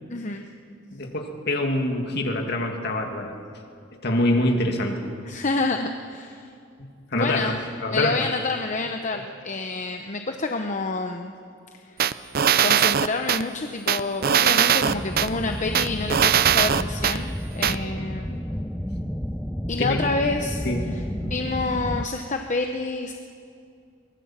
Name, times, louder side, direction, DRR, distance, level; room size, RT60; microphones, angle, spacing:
voice 1, 0.1-0.4 5.2-6.4 7.1-7.6 7.9-11.3 12.6-18.4 19.7-20.6 20.9-23.1, left 3 dB, 40° left, 5 dB, 0.9 m, -28 dB
voice 2, 0.9-3.4 4.0-5.1 7.1-8.1 9.1-9.2 17.7-17.9 19.8-20.0 20.6-20.9, left 1 dB, 55° left, 3 dB, 2.5 m, -25 dB
sound 1, 12.0-13.4 13.9-15.3 15.7-17.2 17.6-17.7, right 9 dB, 50° right, 0.5 m, -20 dB
sound 2, 14.9-22.1, equal, 5° left, 0.6 m, -31 dB
23.5 x 20.5 x 7.4 m, 2.4 s
head